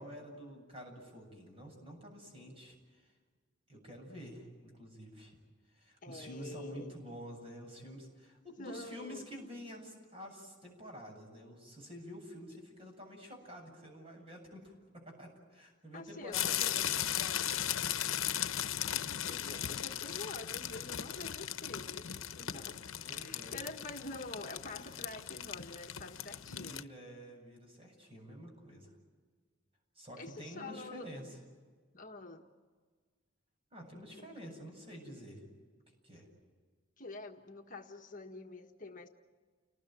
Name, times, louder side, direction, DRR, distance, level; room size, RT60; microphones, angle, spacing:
voice 1, 0.0-3.1 3.7-5.4 5.7-17.4 23.0-23.6 26.5-28.9 29.9-31.4 33.7-35.4 36.0-36.3, equal, 30° right, 2 dB, 7.7 m, -49 dB
voice 2, 6.0-7.0 8.6-9.3 15.9-16.7 18.9-22.8 23.1-26.9 30.2-31.1 31.9-32.4 34.2-34.6 37.0-39.1, left 2 dB, 40° left, 4 dB, 1.6 m, -47 dB
sound 1, 16.3-26.8, left 10 dB, 85° left, 0.9 m, -37 dB
30.0 x 20.0 x 9.2 m, 1.5 s
head